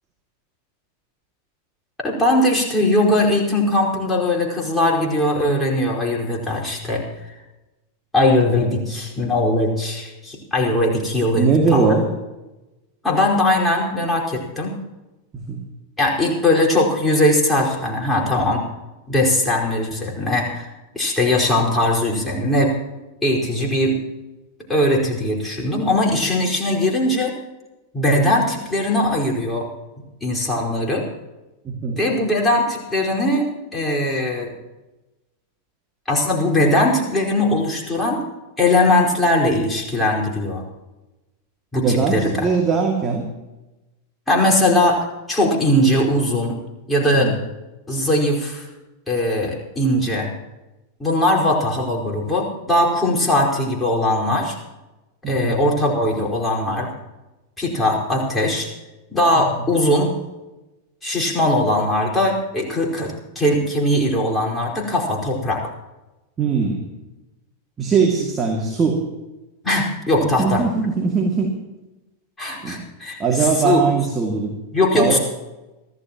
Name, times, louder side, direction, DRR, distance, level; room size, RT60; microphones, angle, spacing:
voice 1, 2.0-7.0 8.1-11.9 13.0-14.8 16.0-18.6 19.1-20.7 20.9-22.8 23.2-24.0 24.7-27.3 27.9-29.7 30.2-31.1 31.9-34.5 36.1-38.2 38.6-40.6 41.7-42.5 44.3-46.6 46.9-47.3 47.9-48.7 49.1-50.3 51.0-54.6 55.3-56.9 57.6-58.7 59.1-60.1 61.0-65.6 69.6-70.6 72.4-73.8 74.7-75.2, left 1 dB, 10° left, -3 dB, 4.9 m, -20 dB
voice 2, 11.3-12.1 15.3-15.6 31.6-32.0 41.8-43.2 47.1-47.4 55.2-55.6 59.3-59.5 66.4-66.8 67.8-69.0 70.2-71.5 72.6-72.8 73.2-74.5 74.9-75.2, right 5 dB, 20° right, 1 dB, 2.4 m, -20 dB
25.5 x 16.0 x 3.1 m, 1.0 s
figure-of-eight pair, 90°, 0 cm